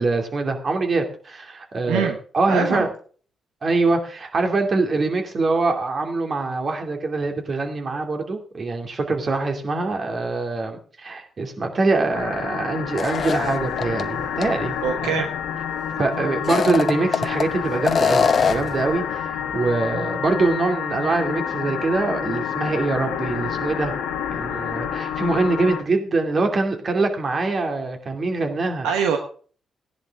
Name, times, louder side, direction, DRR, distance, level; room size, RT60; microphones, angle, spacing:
voice 1, 0.0-2.9 3.6-14.7 15.0-15.2 16.0-23.9 24.3-28.9, right 3 dB, 50° right, 4 dB, 2.6 m, -24 dB
voice 2, 2.5-2.9 14.8-15.3 28.8-29.2, right 7 dB, 85° right, 5 dB, 1.1 m, -23 dB
sound 1, 12.1-25.8, left 8 dB, 85° left, 1.4 m, -29 dB
sound 2, 13.0-14.0 14.4-14.5 16.3-17.5 17.8-18.8, left 5 dB, 55° left, 0.9 m, -22 dB
15.0 x 10.5 x 3.6 m, 0.42 s
hypercardioid pair, 45°, 0 cm